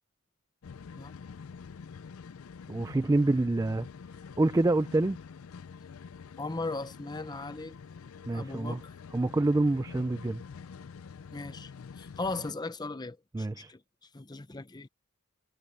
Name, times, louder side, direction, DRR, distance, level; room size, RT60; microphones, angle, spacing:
sound 1, 0.6-12.5, left 5 dB, 70° left, 0.4 m, -47 dB
voice 1, 2.7-3.9 4.4-5.2 8.2-8.8 9.1-10.4 13.3-13.7, right 2 dB, 15° right, 0.3 m, -26 dB
voice 2, 6.4-7.8 8.3-8.9 11.3-13.8 14.1-14.9, left 3 dB, 20° left, 0.6 m, -38 dB
head